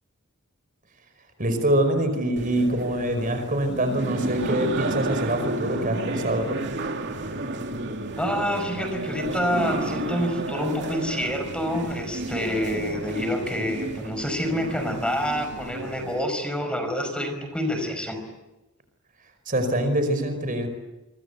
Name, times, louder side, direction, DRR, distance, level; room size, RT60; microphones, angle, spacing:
voice 1, 1.4-6.6 19.5-20.7, right 1 dB, 40° right, 8 dB, 4.9 m, -24 dB
sound 1, 2.4-16.3, right 2 dB, 55° right, 2.6 m, -32 dB
voice 2, 8.2-18.2, left 1 dB, 5° left, 7 dB, 5.3 m, -27 dB
29.5 x 24.5 x 8.1 m, 1.0 s
head